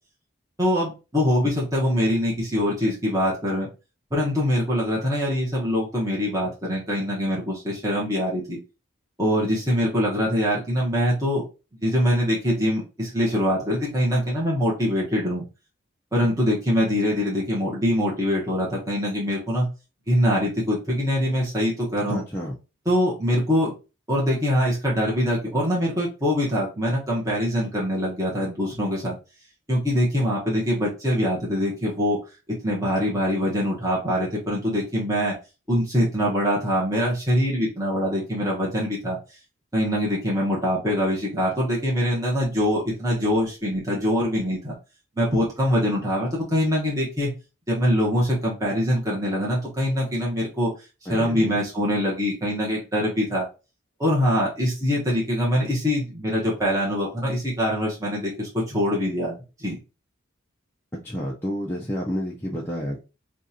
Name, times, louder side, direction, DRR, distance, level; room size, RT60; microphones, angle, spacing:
voice 1, 0.6-3.7 4.1-8.6 9.2-11.4 11.8-15.4 16.1-19.7 20.1-22.2 22.9-23.7 24.1-29.1 29.7-32.2 32.5-35.3 35.7-39.2 39.7-44.8 45.2-47.3 47.7-50.7 51.1-53.5 54.0-59.3 59.6-59.8, equal, 15° right, -5 dB, 1.1 m, -23 dB
voice 2, 22.1-22.6 51.1-51.6 61.0-63.0, equal, 10° left, -4 dB, 0.5 m, -30 dB
5.1 x 2.5 x 2.8 m, 0.30 s
head